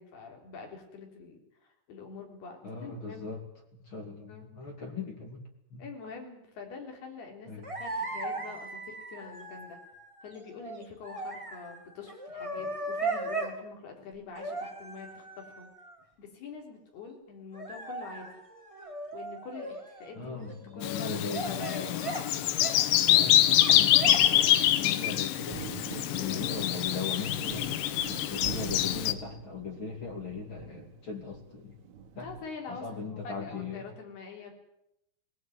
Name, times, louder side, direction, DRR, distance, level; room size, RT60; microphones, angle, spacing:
voice 1, 0.0-1.4 1.9-3.4 4.3-4.5 5.8-9.8 10.2-15.7 16.2-18.3 19.1-20.4 20.7-21.2 21.4-22.3 32.2-34.6, left 5 dB, 55° left, 2 dB, 5.6 m, -45 dB
voice 2, 2.6-3.4 3.7-5.4 5.7-5.8 7.5-7.7 12.6-12.7 20.1-22.0 23.1-25.6 26.1-27.7 28.1-31.8 32.1-32.3 32.7-33.9, left 5 dB, 35° left, 2 dB, 2.5 m, -39 dB
sound 1, 7.6-13.6 14.3-16.0 17.5-20.1 20.4-21.0 21.3-22.3 22.6-23.3 23.6-24.4 24.8-25.3, right 2 dB, 15° right, 1.0 m, -38 dB
Bird vocalization bird call bird song, 20.8-29.1, left 13 dB, 75° left, 3.3 m, -25 dB
Thunder, 25.5-32.5, right 6 dB, 75° right, 4.5 m, -44 dB
20.0 x 17.5 x 9.4 m, 0.81 s
omnidirectional pair, 5.6 m